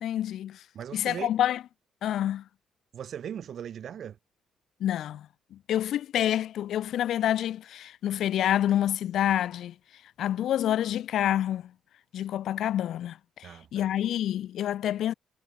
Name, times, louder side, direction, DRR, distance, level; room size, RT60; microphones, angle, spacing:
voice 1, 0.0-0.6 0.9-1.6 2.0-2.4 4.8-9.7 10.2-11.7 12.1-15.1, left 11 dB, 75° left, 0.8 m, -28 dB
voice 2, 0.7-1.3 2.9-4.2 13.4-13.9, right 9 dB, 60° right, 7.1 m, -38 dB
cardioid pair, 90°, 0 cm